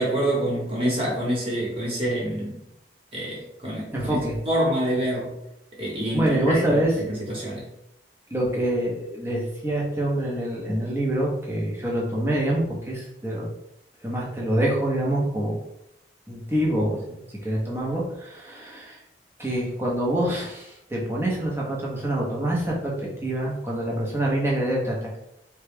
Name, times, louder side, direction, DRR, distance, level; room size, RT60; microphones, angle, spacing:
voice 1, 0.0-2.6 3.1-5.3 5.8-6.8 7.1-7.7, right 1 dB, 35° right, -4 dB, 1.3 m, -26 dB
voice 2, 3.9-4.3 6.1-7.0 8.3-13.5 14.0-15.5 16.3-19.0 19.4-25.2, right 1 dB, 15° right, -4 dB, 0.8 m, -26 dB
3.8 x 2.3 x 3.4 m, 0.83 s
head